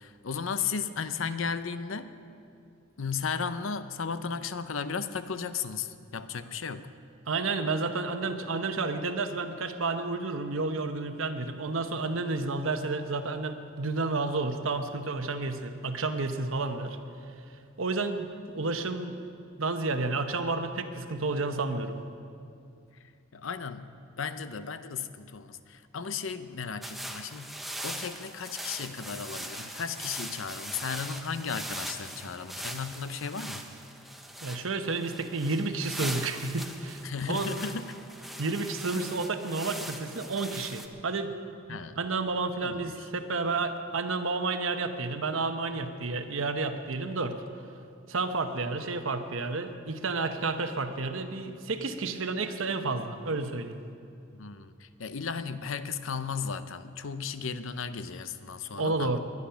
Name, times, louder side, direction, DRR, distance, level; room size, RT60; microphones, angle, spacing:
voice 1, 0.0-2.1 3.0-6.9 23.3-23.9 24.2-27.5 27.8-33.6 37.0-37.9 41.7-42.0 42.6-42.9 54.3-59.1, left 6 dB, 75° left, 12 dB, 0.7 m, -35 dB
voice 2, 7.3-17.0 17.8-18.3 18.5-19.2 19.6-22.0 34.4-37.5 38.4-41.4 41.7-47.4 48.1-53.8 58.8-59.2, right 3 dB, 75° right, 8 dB, 1.0 m, -31 dB
sound 1, 26.8-40.9, right 1 dB, ahead, 0.8 m, -41 dB
20.5 x 11.0 x 5.7 m, 2.5 s
head